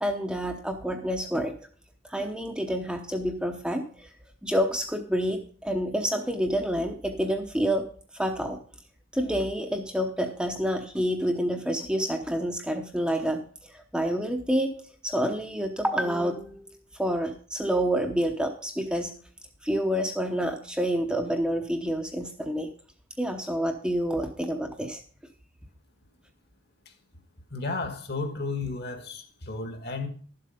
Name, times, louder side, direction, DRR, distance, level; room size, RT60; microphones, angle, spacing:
voice 1, 0.0-1.5 2.1-4.1 4.4-7.9 8.1-8.6 9.1-14.7 15.0-16.7 17.0-19.1 19.6-22.7 23.2-25.0, equal, 5° right, 0.8 m, -28 dB
voice 2, 27.5-30.1, left 3 dB, 50° left, 1.7 m, -33 dB
12.0 x 7.7 x 5.2 m
head